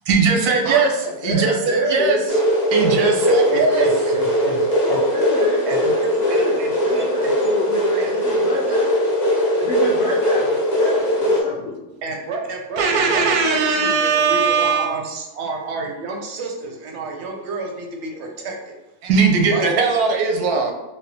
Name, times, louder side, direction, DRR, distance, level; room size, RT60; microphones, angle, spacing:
voice 1, 0.1-0.9 1.2-2.2 2.7-3.8 12.8-14.9 19.0-20.7, right 4 dB, 85° right, 2 dB, 1.1 m, -18 dB
voice 2, 0.8-2.3 4.9-8.9 9.6-10.5 10.7-11.7, left 3 dB, 75° left, -4 dB, 0.5 m, -27 dB
sound 1, 2.3-11.4, equal, 40° left, 0.7 m, -20 dB
voice 3, 3.3-5.1 5.7-7.3 8.0-8.1 11.5-11.7 12.0-18.8 19.5-19.7, right 3 dB, 65° right, 1 dB, 0.7 m, -30 dB
3.5 x 2.3 x 2.6 m, 1.0 s
omnidirectional pair, 1.6 m